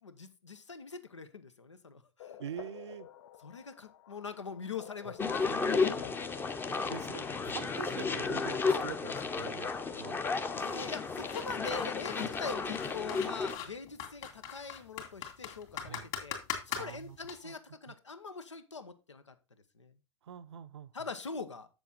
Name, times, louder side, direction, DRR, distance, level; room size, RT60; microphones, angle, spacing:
voice 1, 0.0-2.4 3.4-6.3 10.5-16.4 16.6-19.3 19.8-20.0 20.9-21.7, left 4 dB, 85° left, 0.9 m, -43 dB
sound 1, 2.2-12.5, left 11 dB, 65° left, 0.7 m, -51 dB
voice 2, 2.4-3.1 5.0-5.1 6.7-10.2 12.2-12.3 15.9-16.1 16.8-17.2 17.4-17.5 17.9-18.0 20.2-20.9, right 9 dB, 65° right, 0.7 m, -44 dB
sound 2, 5.2-13.6, left 4 dB, 15° left, 0.7 m, -33 dB
sound 3, 11.2-17.3, left 9 dB, 45° left, 2.4 m, -40 dB
7.4 x 7.0 x 3.8 m
figure-of-eight pair, 100°, 15 cm